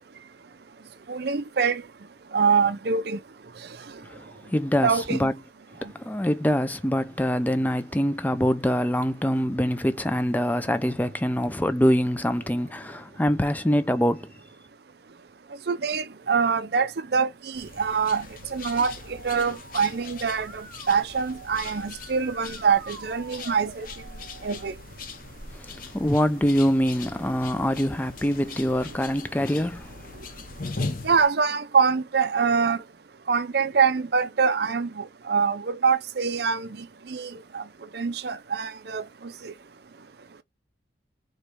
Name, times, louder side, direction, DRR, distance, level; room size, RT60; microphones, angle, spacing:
voice 1, 1.1-1.8 2.3-3.2 4.8-5.3 15.7-18.9 19.2-23.9 24.4-24.7 31.0-32.8 33.3-36.7 37.1-37.6 37.9-39.5, right 5 dB, 60° right, 0.5 m, -24 dB
voice 2, 4.0-5.3 5.8-14.3 25.5-29.9, equal, 10° left, 0.4 m, -24 dB
sound 1, 17.5-31.3, left 3 dB, 50° left, 0.7 m, -40 dB
Musical instrument, 19.1-24.7, right 4 dB, 90° right, 0.8 m, -46 dB
4.6 x 3.0 x 3.3 m
head